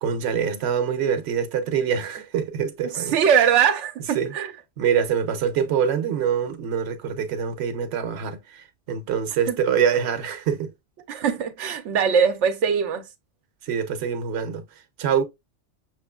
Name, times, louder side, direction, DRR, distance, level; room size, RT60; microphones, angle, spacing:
voice 1, 0.0-3.2 4.2-4.3 4.8-10.7 13.6-14.6 15.0-15.2, right 7 dB, 70° right, 0.9 m, -25 dB
voice 2, 2.8-4.5 9.5-9.6 11.1-13.0, right 7 dB, 85° right, 0.9 m, -21 dB
6.0 x 3.0 x 2.2 m
omnidirectional pair, 1.2 m